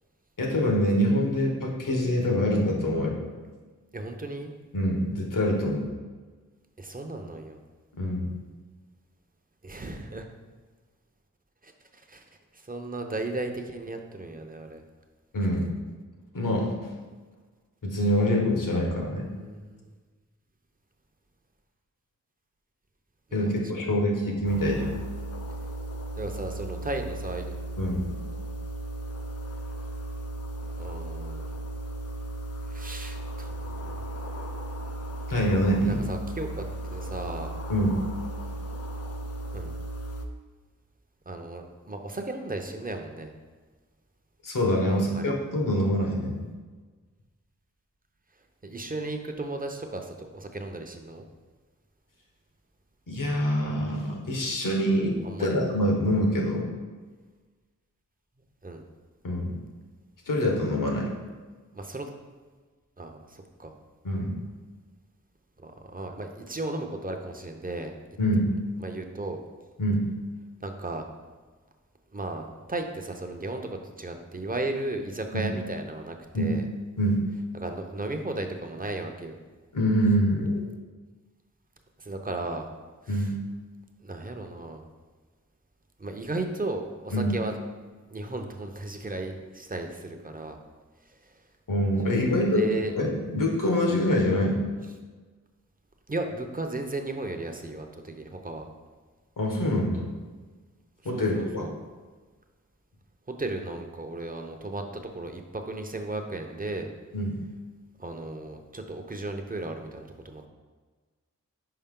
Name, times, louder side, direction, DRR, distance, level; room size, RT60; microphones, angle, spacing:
voice 1, 0.4-3.2 4.7-5.9 7.9-8.3 15.3-15.7 16.3-16.7 17.8-19.3 23.3-24.9 27.8-28.1 35.3-36.0 37.7-38.0 44.4-46.4 53.1-56.7 59.2-59.5 60.3-61.1 64.0-64.4 68.2-68.5 69.8-70.1 75.3-75.5 76.3-76.5 77.0-77.2 79.7-80.6 83.1-83.3 87.1-87.3 91.7-94.6 99.4-100.1 101.0-101.6 107.1-107.4, equal, 75° left, -1 dB, 1.2 m, -25 dB
voice 2, 3.9-4.5 6.8-7.6 9.6-10.2 11.6-12.2 12.5-14.8 19.3-19.9 23.3-23.5 26.2-27.5 30.8-31.6 32.7-34.0 35.8-36.6 36.9-37.5 39.5-39.7 41.3-43.3 44.9-45.3 48.6-51.2 55.2-55.6 58.6-58.8 61.7-62.1 63.0-63.7 65.6-67.9 68.8-69.4 70.6-71.0 72.1-76.7 77.5-79.4 82.0-82.7 83.0-83.2 84.0-84.8 86.0-87.5 88.1-90.6 92.0-92.9 96.1-98.7 101.1-101.8 103.3-106.9 108.0-110.5, right 2 dB, 25° right, 4 dB, 0.7 m, -35 dB
sound 1, 24.4-40.3, right 1 dB, 50° left, 0.6 m, -36 dB
5.7 x 4.9 x 3.7 m, 1.4 s
wide cardioid pair, 60°, 32 cm